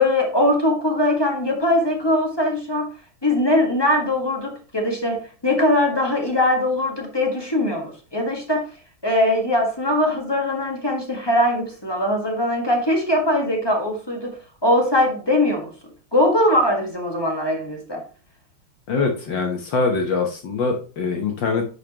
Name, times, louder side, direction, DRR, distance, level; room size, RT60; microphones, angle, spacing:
voice 1, 0.0-2.9 3.2-8.6 9.0-14.3 14.6-15.7 16.1-18.0, left 1 dB, 15° left, 1 dB, 1.6 m, -21 dB
voice 2, 18.9-21.6, left 4 dB, 65° left, 3 dB, 1.8 m, -23 dB
10.5 x 5.1 x 3.0 m, 0.37 s
omnidirectional pair, 2.3 m